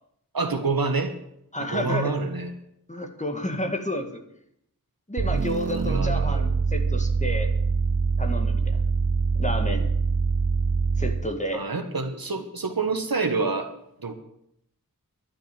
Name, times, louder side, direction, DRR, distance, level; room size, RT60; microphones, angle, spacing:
voice 1, 0.3-1.2 1.6-2.5 5.7-6.5 11.5-13.7 14.0-14.1, right 4 dB, 80° right, 7 dB, 1.4 m, -27 dB
voice 2, 1.5-2.1 2.9-4.2 5.1-7.5 8.2-8.8 9.4-9.9 11.0-11.6, equal, 20° left, 4 dB, 1.8 m, -30 dB
sound 1, 5.2-11.4, right 5 dB, 50° right, 0.8 m, -24 dB
11.5 x 6.5 x 9.0 m, 0.75 s
wide cardioid pair, 50°, 35 cm